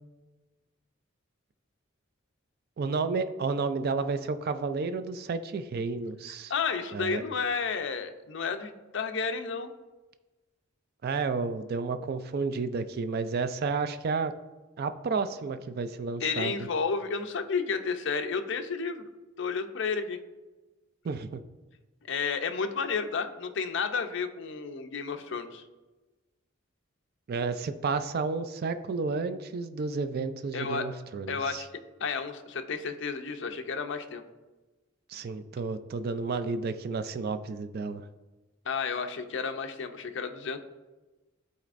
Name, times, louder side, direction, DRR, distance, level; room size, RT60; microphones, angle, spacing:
voice 1, 2.8-6.5 6.9-7.2 11.0-14.3 14.8-16.6 21.0-21.4 27.3-31.6 35.1-38.1, right 4 dB, 50° right, 10 dB, 0.3 m, -31 dB
voice 2, 6.5-9.7 16.2-19.0 19.4-20.2 22.0-25.6 30.5-30.9 31.3-31.7 32.0-34.2 38.7-40.6, left 5 dB, 60° left, 7 dB, 0.5 m, -31 dB
12.0 x 4.2 x 2.5 m, 1.2 s
head